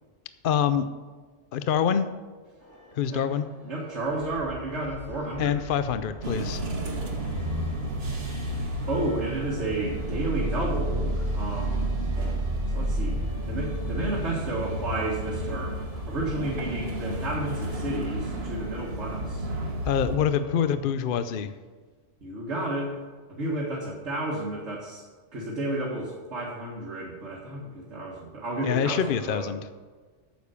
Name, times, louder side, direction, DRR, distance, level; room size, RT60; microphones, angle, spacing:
voice 1, 0.4-0.9 1.5-2.1 3.0-3.5 5.4-6.6 19.8-21.5 28.6-29.6, left 8 dB, 60° left, 11 dB, 0.7 m, -25 dB
sound 1, 2.6-20.8, right 2 dB, 10° left, 1.7 m, -47 dB
voice 2, 3.6-5.7 8.9-11.9 12.7-19.5 22.2-23.0 23.3-25.0 25.3-29.5, right 1 dB, 75° right, -6 dB, 2.0 m, -32 dB
sound 2, 6.2-20.2, right 1 dB, 60° right, 1.5 m, -31 dB
9.3 x 7.0 x 6.9 m, 1.4 s
omnidirectional pair, 1.2 m